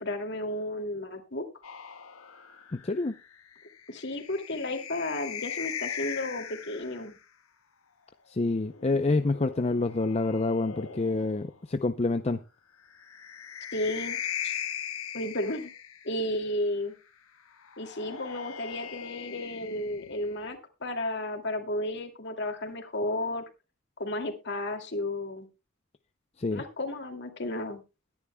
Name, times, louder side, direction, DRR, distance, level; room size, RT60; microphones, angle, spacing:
voice 1, 0.0-1.4 3.9-7.1 13.7-14.2 14.4-14.5 15.1-15.7 16.0-16.9 17.8-23.4 24.0-25.5 26.5-27.8, left 1 dB, 55° left, 2.4 m, -33 dB
sound 1, 1.6-7.2 8.5-11.5 12.9-16.3 17.6-20.5, left 8 dB, 85° left, 1.5 m, -40 dB
voice 2, 2.7-3.2 8.3-12.4 26.4-26.6, left 3 dB, 30° left, 0.5 m, -27 dB
22.0 x 10.5 x 2.2 m
head